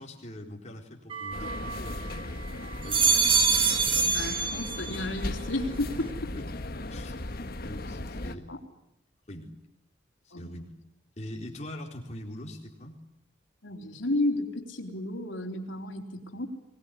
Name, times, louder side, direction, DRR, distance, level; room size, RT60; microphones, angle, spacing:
voice 1, 0.0-3.4 6.3-6.5 6.8-7.2 7.6-8.5 9.3-9.5 10.2-10.7 11.2-13.0, left 1 dB, 35° left, 1 dB, 4.2 m, -42 dB
sound 1, 1.1-2.2 2.7-5.1 5.5-6.1, right 5 dB, 30° right, 1.6 m, -26 dB
sound 2, 1.3-8.3, left 1 dB, 50° left, 1.3 m, -37 dB
voice 2, 4.0-6.3 8.5-8.6 10.3-10.5 13.6-16.5, left 2 dB, 80° left, 3 dB, 3.8 m, -32 dB
24.0 x 19.5 x 10.0 m, 0.84 s
head